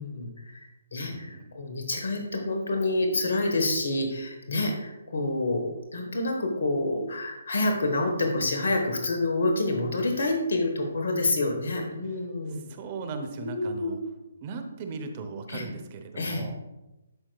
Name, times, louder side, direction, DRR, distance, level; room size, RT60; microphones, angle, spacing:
voice 1, 0.0-12.7 13.4-14.0 15.5-15.7 16.2-16.4, left 2 dB, 65° left, 3 dB, 1.2 m, -28 dB
voice 2, 1.0-1.6 12.5-14.0 14.4-16.6, right 4 dB, 35° right, 6 dB, 0.8 m, -38 dB
11.5 x 4.5 x 2.3 m, 0.99 s
figure-of-eight pair, 145°, 0 cm